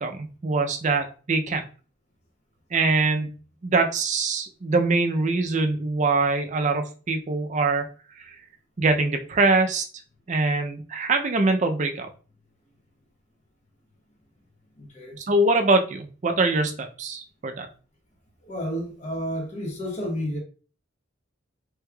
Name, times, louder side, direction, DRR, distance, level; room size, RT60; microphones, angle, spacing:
voice 1, 0.0-1.7 2.7-3.3 3.6-7.9 8.2-8.4 8.8-9.9 10.3-12.1 15.2-17.7, right 3 dB, 35° right, 0.4 m, -23 dB
voice 2, 14.8-15.2 18.4-20.4, equal, 35° left, 1.0 m, -31 dB
3.5 x 3.2 x 2.2 m
head